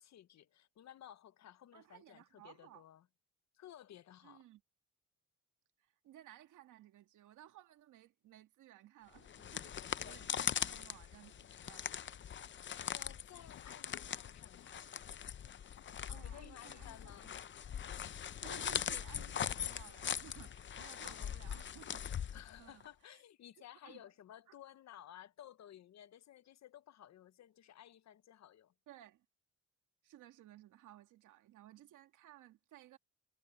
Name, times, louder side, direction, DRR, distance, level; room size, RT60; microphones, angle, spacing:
voice 1, 0.0-3.1 3.5-4.5 10.4-10.8 12.8-14.9 16.2-17.3 21.0-21.4 22.3-28.7, left 11 dB, 65° left, 1.0 m, -56 dB
voice 2, 1.7-2.8 4.2-4.6 5.8-11.9 16.1-17.3 18.4-22.0 22.3-23.2 23.6-24.0 24.5-24.6 28.9-29.3 30.0-33.0, right 13 dB, 85° right, 2.2 m, -58 dB
sound 1, 9.2-22.9, left 9 dB, 40° left, 0.6 m, -41 dB
Tools / Wood, 13.3-13.8 14.3-14.7 15.4-16.0 16.6-17.4 18.2-19.0, left 13 dB, 80° left, 1.2 m, -63 dB
cardioid pair, 90°, 30 cm